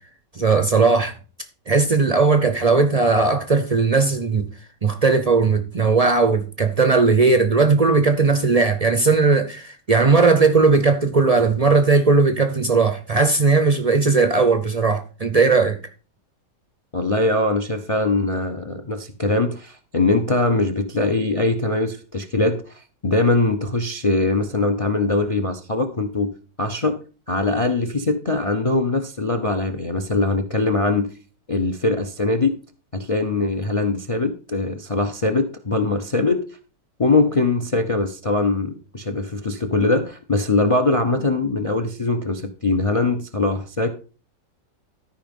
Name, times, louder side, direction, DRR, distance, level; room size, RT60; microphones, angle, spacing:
voice 1, 0.3-1.1 1.7-4.4 4.8-15.8, right 4 dB, 55° right, 0.4 m, -17 dB
voice 2, 16.9-22.6 23.0-26.3 26.6-27.0 27.3-31.1 31.5-32.5 32.9-36.4 37.0-43.9, left 2 dB, 50° left, 0.4 m, -22 dB
13.0 x 5.1 x 5.3 m
omnidirectional pair, 1.9 m